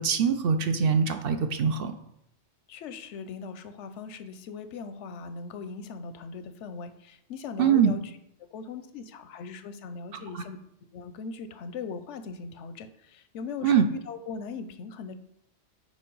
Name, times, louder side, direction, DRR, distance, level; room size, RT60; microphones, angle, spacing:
voice 1, 0.0-1.9 7.6-7.9 10.3-10.4 13.6-13.8, right 7 dB, 60° right, 8 dB, 0.7 m, -23 dB
voice 2, 2.7-8.0 8.4-10.6 10.9-15.2, left 5 dB, 90° left, 11 dB, 0.9 m, -39 dB
5.1 x 4.3 x 5.5 m, 0.75 s
omnidirectional pair, 1.2 m